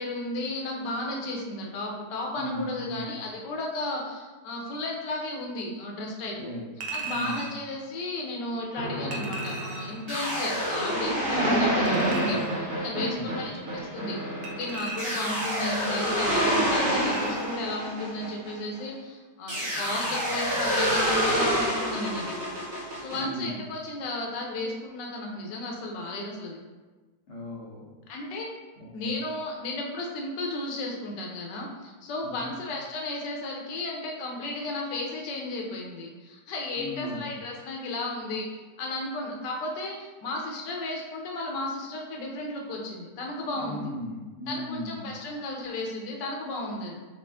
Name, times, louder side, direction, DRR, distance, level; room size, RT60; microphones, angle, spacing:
voice 1, 0.0-6.5 6.9-12.4 12.8-14.2 14.6-22.4 23.0-26.6 28.1-28.5 28.9-38.5 38.8-43.9 44.5-47.0, left 2 dB, 80° left, -1 dB, 1.4 m, -34 dB
voice 2, 2.4-3.1 6.4-6.6 7.0-7.5 12.0-12.4 12.9-13.4 23.1-23.6 27.3-27.9 28.8-29.1 32.4-32.5 36.8-37.3 43.5-45.2, equal, 55° left, -8 dB, 1.0 m, -36 dB
Chink clink, 6.8-7.6 9.1-10.0 11.9-12.6 14.4-15.4 17.0-17.6 18.0-18.1, right 3 dB, 75° right, 1.2 m, -38 dB
sound 1, 8.8-18.9 19.5-23.2, equal, 55° right, 1.4 m, -27 dB
4.7 x 2.5 x 3.4 m, 1.3 s
omnidirectional pair, 1.9 m